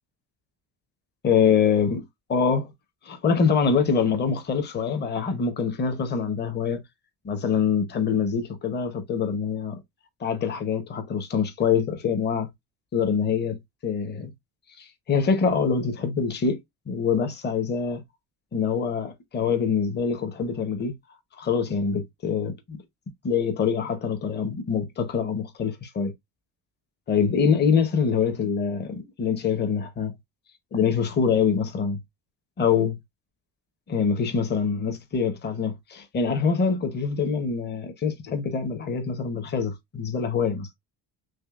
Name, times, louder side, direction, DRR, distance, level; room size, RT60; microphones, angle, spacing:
voice 1, 1.2-2.0 2.3-2.7 3.0-6.8 7.2-9.8 10.2-12.5 12.9-13.6 13.8-14.3 14.8-16.6 16.9-18.0 18.5-20.9 21.4-22.8 23.2-26.1 27.1-30.1 30.7-32.0 32.6-33.0 33.9-40.7, left 6 dB, 25° left, 0.8 m, -24 dB
6.2 x 2.1 x 2.3 m
cardioid pair, 175°, 38 cm